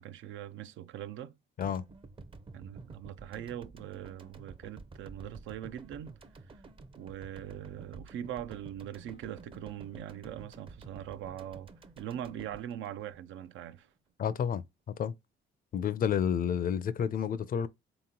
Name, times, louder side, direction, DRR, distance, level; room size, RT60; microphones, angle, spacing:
voice 1, 0.0-1.4 2.5-6.2 6.5-6.6 7.0-13.9, right 11 dB, 75° right, 0.4 m, -42 dB
sound 1, 1.6-13.8, right 3 dB, 25° right, 0.5 m, -51 dB
voice 2, 14.2-14.6 15.0-15.1 15.7-17.7, left 8 dB, 45° left, 0.4 m, -30 dB
3.5 x 2.9 x 3.7 m
cardioid pair, 90°, 20 cm